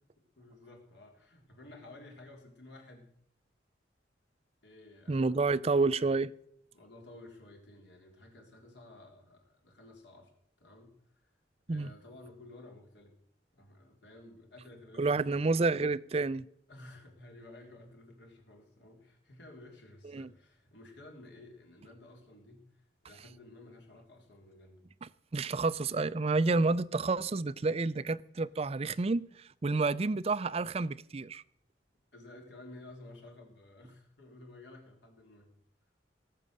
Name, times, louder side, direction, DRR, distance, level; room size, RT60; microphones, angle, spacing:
voice 1, 0.4-3.1 4.6-5.8 6.7-10.3 10.6-11.3 11.7-13.1 13.5-15.4 16.7-24.8 28.4-28.6 32.1-35.5, left 2 dB, 70° left, 3.7 m, -53 dB
voice 2, 5.1-6.3 11.7-11.9 15.0-16.5 20.1-20.3 25.3-29.2 29.6-31.4, right 3 dB, 35° right, 0.4 m, -29 dB
18.0 x 7.5 x 6.8 m
head